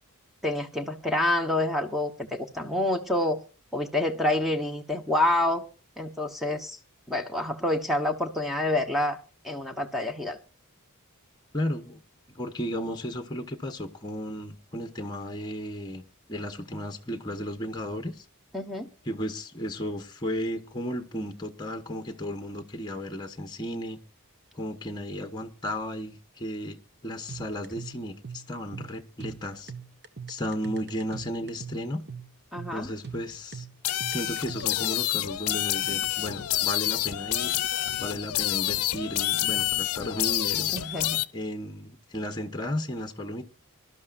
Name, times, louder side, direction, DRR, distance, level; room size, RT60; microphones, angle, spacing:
voice 1, 0.4-3.4 3.7-5.6 6.0-6.8 7.1-9.2 9.4-10.4 18.5-18.9 32.5-32.9 40.7-41.2, left 1 dB, ahead, 1.2 m, -27 dB
voice 2, 11.5-12.0 12.3-16.0 16.3-18.2 19.1-24.0 24.5-29.7 30.3-32.0 32.7-33.7 34.1-37.5 38.0-40.7 41.3-43.4, equal, 20° left, 1.1 m, -34 dB
sound 1, 27.3-34.9, right 5 dB, 50° right, 1.4 m, -42 dB
sound 2, 33.8-41.3, left 14 dB, 85° left, 0.6 m, -28 dB
25.0 x 12.5 x 2.6 m
head